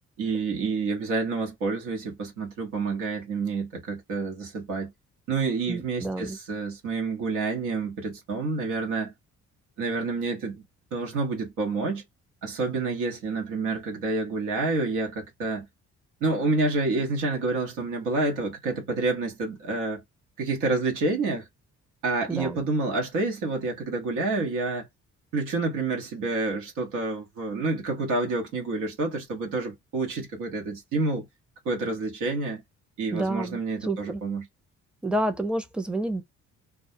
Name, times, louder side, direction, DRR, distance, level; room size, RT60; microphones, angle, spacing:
voice 1, 0.2-4.9 5.3-9.1 9.8-10.6 10.9-12.0 12.4-15.7 16.2-20.0 20.4-21.5 22.0-24.9 25.3-31.3 31.6-32.6 33.0-34.4, right 3 dB, 90° right, 1.0 m, -28 dB
voice 2, 5.7-6.4 22.3-22.6 33.1-34.2 35.0-36.2, right 1 dB, 5° right, 0.5 m, -29 dB
2.3 x 2.1 x 2.6 m
cardioid pair, 90°, 30 cm